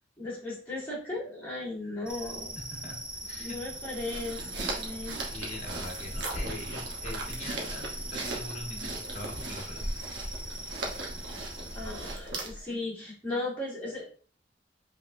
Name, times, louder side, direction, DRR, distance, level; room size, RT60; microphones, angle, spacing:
voice 1, 0.2-2.6 3.4-5.2 11.7-14.0, left 2 dB, 10° left, -8 dB, 2.3 m, -36 dB
sound 1, 2.1-12.1, right 1 dB, 5° right, 0.5 m, -42 dB
voice 2, 2.6-3.8 5.3-9.9, left 1 dB, 40° left, 0 dB, 1.3 m, -42 dB
sound 2, 3.7-12.7, right 2 dB, 75° right, 1.0 m, -37 dB
5.2 x 3.6 x 2.6 m, 0.41 s
head